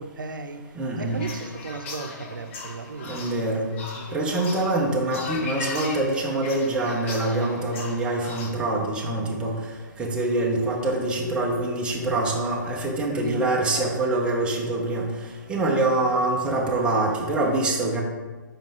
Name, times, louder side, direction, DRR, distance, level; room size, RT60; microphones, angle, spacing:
voice 1, 0.0-4.2 13.1-14.2, right 4 dB, 75° right, 7 dB, 0.8 m, -37 dB
voice 2, 0.8-1.2 3.1-3.7 4.1-9.5 10.0-15.1 15.5-18.0, right 2 dB, 10° right, -2 dB, 1.1 m, -25 dB
sound 1, 1.0-8.5, left 3 dB, 40° left, 1.1 m, -38 dB
7.2 x 5.4 x 3.7 m, 1.3 s
figure-of-eight pair, 140°, 11 cm